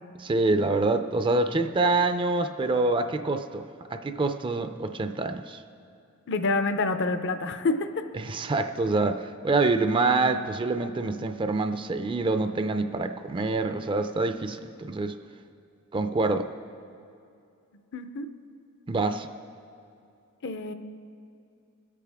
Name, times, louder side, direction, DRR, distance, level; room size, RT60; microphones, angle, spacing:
voice 1, 0.2-3.6 3.9-5.6 8.2-15.2 15.9-16.5 18.9-19.3, right 3 dB, 25° right, 8 dB, 0.4 m, -26 dB
voice 2, 6.3-8.0 17.9-18.3 20.4-20.7, left 3 dB, 55° left, 9 dB, 0.6 m, -27 dB
21.5 x 8.4 x 3.5 m, 2.5 s
head